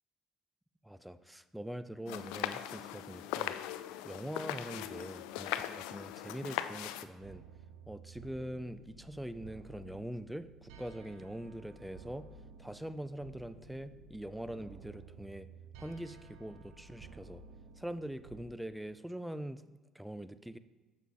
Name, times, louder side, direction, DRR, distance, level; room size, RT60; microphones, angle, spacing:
voice 1, 0.8-3.6 4.0-7.4 7.9-12.3 12.6-15.5 15.8-17.4 17.8-19.6 19.9-20.6, right 1 dB, 5° right, 13 dB, 0.4 m, -43 dB
sound 1, 2.1-7.1, left 12 dB, 80° left, 0.3 m, -39 dB
sound 2, 7.2-18.4, right 4 dB, 80° right, 0.7 m, -54 dB
7.0 x 6.1 x 4.3 m, 1.2 s
supercardioid pair, 75°, 0 cm